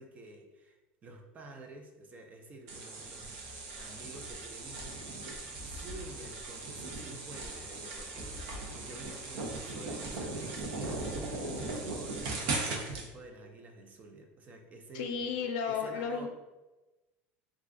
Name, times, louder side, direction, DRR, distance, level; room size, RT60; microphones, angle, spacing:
voice 1, 0.0-3.4 3.8-11.5 11.9-16.3, right 2 dB, 30° right, 3 dB, 0.4 m, -50 dB
sound 1, 2.7-13.1, right 2 dB, 80° right, 0.7 m, -38 dB
voice 2, 14.9-16.3, left 6 dB, 75° left, 5 dB, 0.5 m, -33 dB
2.4 x 2.4 x 3.6 m, 1.1 s
supercardioid pair, 130°, 5 cm